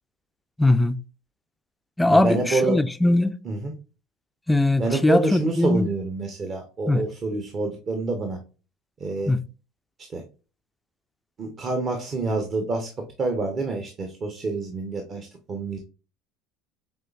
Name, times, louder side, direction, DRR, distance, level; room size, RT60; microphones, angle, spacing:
voice 1, 0.6-1.0 2.0-3.3 4.5-5.9 6.9-7.1 9.3-9.4, left 2 dB, 5° left, 0.3 m, -20 dB
voice 2, 2.1-2.8 3.4-3.7 4.8-8.4 9.0-9.3 10.1-10.2 11.4-12.9 13.2-15.8, right 3 dB, 40° right, 0.8 m, -27 dB
5.5 x 3.1 x 2.4 m
hypercardioid pair, 80°, 0 cm